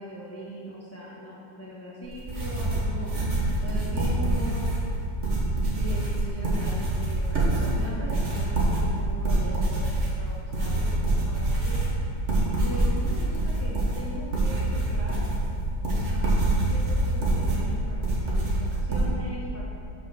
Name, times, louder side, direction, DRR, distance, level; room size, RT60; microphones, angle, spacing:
voice 1, 0.0-3.1 3.6-4.6 5.7-11.9 12.6-15.2 15.8-19.6, equal, 10° left, -7 dB, 0.8 m, -40 dB
sound 1, 2.0-19.0, right 1 dB, 40° right, 1.6 m, -26 dB
6.3 x 6.0 x 6.2 m, 2.6 s
omnidirectional pair, 2.0 m